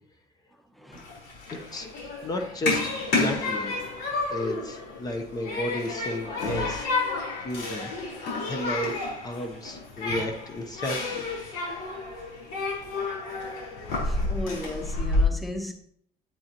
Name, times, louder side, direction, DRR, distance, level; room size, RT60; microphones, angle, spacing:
voice 1, 0.7-1.1 8.8-8.9 9.4-9.5 14.0-15.7, left 1 dB, ahead, 0.9 m, -35 dB
Human group actions, 0.9-15.2, left 2 dB, 80° left, 4.3 m, -30 dB
voice 2, 1.5-1.9 2.2-3.8 4.0-6.9 7.4-7.9 8.2-11.3, left 1 dB, 25° left, 0.9 m, -33 dB
9.5 x 8.7 x 3.0 m
cardioid pair, 150°, 15 cm